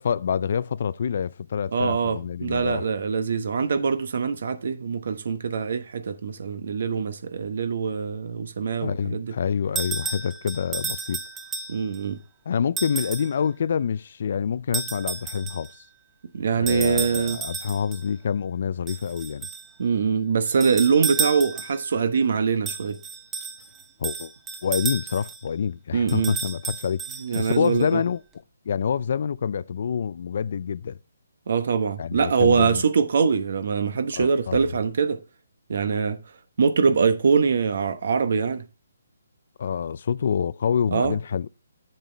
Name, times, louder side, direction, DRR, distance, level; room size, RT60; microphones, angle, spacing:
voice 1, 0.0-2.9 8.8-11.2 12.5-15.7 16.6-19.5 24.0-24.3 24.6-27.0 27.3-28.2 28.7-31.0 32.0-32.8 34.1-34.7 39.6-41.5, left 7 dB, 55° left, 0.3 m, -27 dB
voice 2, 1.7-9.3 11.7-12.2 16.3-17.4 19.8-23.0 25.9-26.3 27.2-28.0 31.5-35.2 35.7-36.2 36.6-38.6 40.9-41.2, right 5 dB, 60° right, 1.0 m, -23 dB
sound 1, 9.8-12.0 12.8-13.4 14.7-15.7 16.7-18.0 18.9-19.7 20.5-21.9 22.7-25.4 26.1-27.8, right 5 dB, 10° right, 0.7 m, -32 dB
8.2 x 7.3 x 3.3 m
hypercardioid pair, 155°, 0 cm